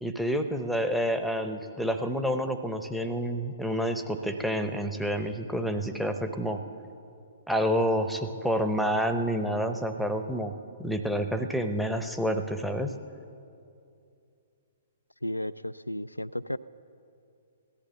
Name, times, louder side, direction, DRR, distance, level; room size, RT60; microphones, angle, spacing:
voice 1, 0.0-6.6 7.5-10.5 10.8-12.9, equal, ahead, 7 dB, 0.8 m, -28 dB
voice 2, 15.2-16.6, left 1 dB, 90° left, 13 dB, 0.3 m, -33 dB
17.0 x 12.0 x 7.1 m, 2.6 s
figure-of-eight pair, 120°, 0 cm